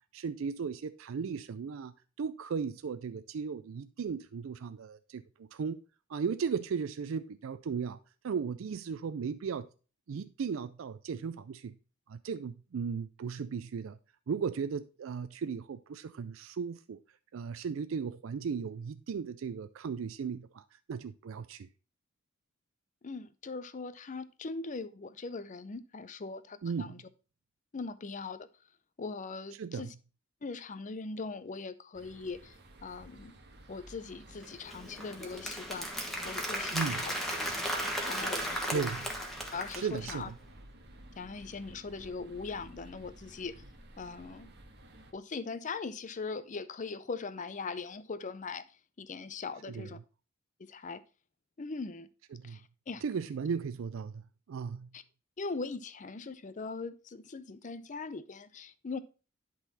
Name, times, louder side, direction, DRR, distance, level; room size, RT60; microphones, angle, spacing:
voice 1, 0.0-5.8 6.1-8.0 8.2-9.7 10.1-11.7 12.1-14.0 14.3-17.0 17.3-21.7 26.6-27.0 29.6-29.9 36.7-37.0 38.7-39.0 39.7-40.3 49.7-49.9 52.3-52.6 53.0-54.9, right 6 dB, 70° right, 0.4 m, -36 dB
voice 2, 23.0-27.0 27.7-28.5 29.0-29.9 30.4-32.6 32.8-33.3 33.7-35.9 36.2-37.1 38.1-38.8 39.5-40.3 41.2-43.6 44.0-44.5 45.1-48.6 49.0-50.0 50.6-51.0 51.6-52.1 52.4-52.6 52.9-53.0 54.9-55.0 55.4-59.0, left 4 dB, 35° left, 0.5 m, -40 dB
sound 1, 31.9-45.1, right 1 dB, 55° right, 1.4 m, -54 dB
Applause, 34.4-40.2, equal, ahead, 1.4 m, -35 dB
11.0 x 3.9 x 4.1 m
head